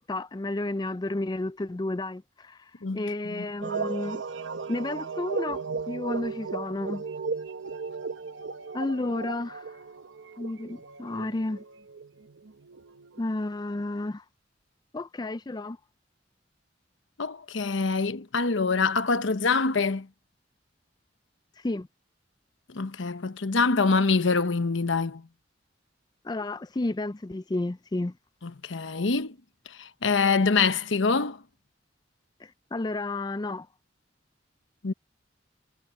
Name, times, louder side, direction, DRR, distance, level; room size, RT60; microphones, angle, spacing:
voice 1, 0.0-2.6 2.9-4.2 4.7-7.0 8.7-9.7 10.4-11.6 13.2-14.2 14.9-15.8 21.6-21.9 26.2-28.1 32.4-33.7, left 2 dB, 20° left, 0.4 m, -31 dB
voice 2, 2.8-3.4 17.2-20.1 22.7-25.2 28.4-29.3 29.8-31.4 34.8-34.9, left 4 dB, 90° left, 1.0 m, -25 dB
sound 1, 3.6-13.6, right 4 dB, 85° right, 0.9 m, -36 dB
head